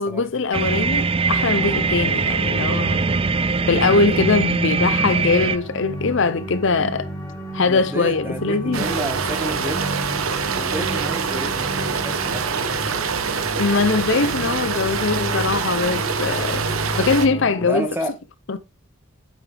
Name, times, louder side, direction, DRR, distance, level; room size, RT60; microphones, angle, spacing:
voice 1, 0.0-3.0 3.7-7.1 7.5-8.8 13.6-16.7 17.0-17.9 18.5-18.6, left 4 dB, 55° left, 0.6 m, -21 dB
sound 1, 0.5-5.6, right 4 dB, 25° right, 0.4 m, -21 dB
sound 2, 1.5-17.7, equal, 10° left, 3.4 m, -33 dB
voice 2, 7.6-9.8 10.6-12.8 17.6-18.1, right 1 dB, 10° right, 1.6 m, -30 dB
sound 3, 8.7-17.3, right 6 dB, 75° right, 1.1 m, -25 dB
9.0 x 7.5 x 3.4 m
head